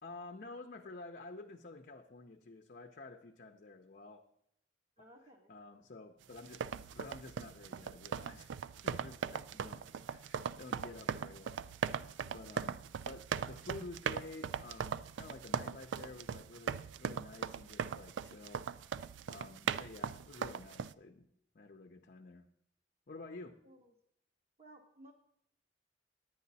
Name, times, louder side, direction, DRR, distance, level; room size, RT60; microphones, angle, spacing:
voice 1, 0.0-4.2 5.0-5.1 5.5-6.6 6.9-8.6 8.8-11.6 12.1-18.7 19.3-21.3 21.5-22.5 23.1-23.6, left 3 dB, 50° left, 4 dB, 0.6 m, -51 dB
voice 2, 5.0-5.5 23.6-23.9 24.6-25.1, right 1 dB, 40° right, 0 dB, 1.0 m, -58 dB
sound 1, 6.4-20.9, right 7 dB, 80° right, 0.3 m, -39 dB
10.0 x 9.5 x 4.1 m, 0.75 s
head